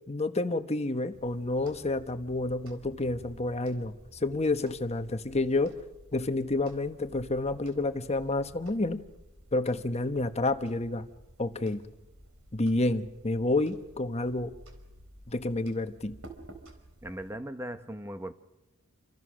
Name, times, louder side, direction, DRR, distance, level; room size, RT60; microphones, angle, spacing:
voice 1, 0.1-5.8 6.1-9.0 9.5-11.1 11.4-11.8 12.5-14.5 15.3-16.2, left 2 dB, 30° left, 9 dB, 1.2 m, -29 dB
sound 1, 1.1-17.3, right 1 dB, 70° right, 4.6 m, -53 dB
voice 2, 17.0-18.3, right 1 dB, 10° right, 9 dB, 0.9 m, -38 dB
29.0 x 26.0 x 6.4 m, 1.0 s
head